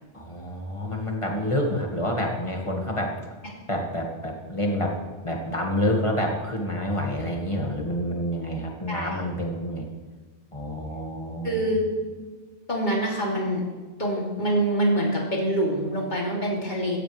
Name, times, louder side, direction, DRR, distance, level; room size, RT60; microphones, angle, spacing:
voice 1, 0.1-3.2 3.7-5.0 5.2-9.9 10.5-11.7, equal, 30° left, 0 dB, 2.0 m, -28 dB
voice 2, 8.9-9.2 11.4-11.9 12.7-13.6 14.0-17.0, right 1 dB, 45° left, -3 dB, 3.1 m, -25 dB
16.0 x 15.0 x 3.4 m, 1.4 s
omnidirectional pair, 1.1 m